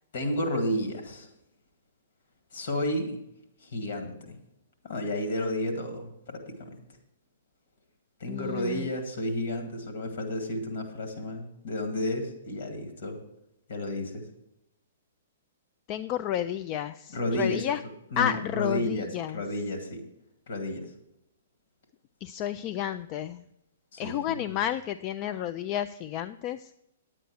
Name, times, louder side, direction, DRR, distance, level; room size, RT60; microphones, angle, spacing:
voice 1, 0.1-1.3 2.5-3.2 3.6-4.4 4.8-6.8 8.2-13.2 13.7-14.3 17.1-17.7 18.1-20.0 20.5-20.9 23.9-24.6, left 1 dB, 60° left, 6 dB, 2.0 m, -32 dB
voice 2, 8.3-8.9 15.9-17.8 18.2-19.4 22.2-23.4 24.0-26.7, left 10 dB, 35° left, 11 dB, 0.3 m, -31 dB
10.0 x 8.8 x 4.7 m, 0.82 s
figure-of-eight pair, 115°, 0 cm